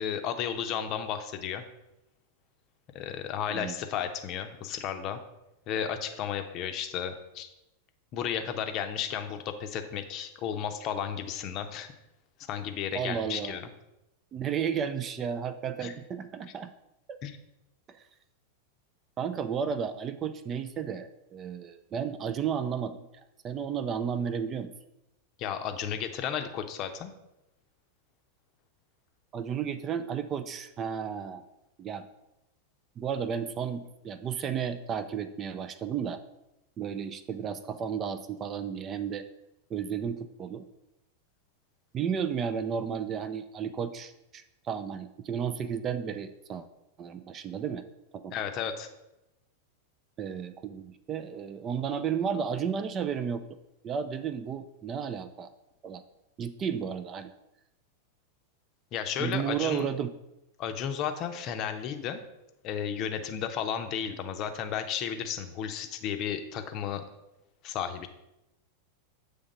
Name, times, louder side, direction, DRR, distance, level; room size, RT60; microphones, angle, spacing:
voice 1, 0.0-1.6 2.9-5.2 5.7-7.5 8.1-11.9 12.5-13.7 15.8-15.9 17.2-17.3 25.4-27.1 48.3-48.9 58.9-59.9 60.6-62.2 62.6-67.0 67.6-68.1, left 8 dB, 40° left, 7 dB, 0.6 m, -33 dB
voice 2, 12.9-13.6 14.3-16.7 17.9-18.0 19.2-24.7 29.3-31.4 31.8-32.1 33.0-36.2 36.8-39.2 39.7-40.7 41.9-46.7 47.0-47.8 48.1-48.3 50.2-53.4 53.8-55.5 55.8-56.0 56.4-57.3 59.2-60.1, right 7 dB, 30° right, 11 dB, 0.4 m, -33 dB
7.6 x 3.4 x 5.1 m, 0.91 s
figure-of-eight pair, 90°, 0 cm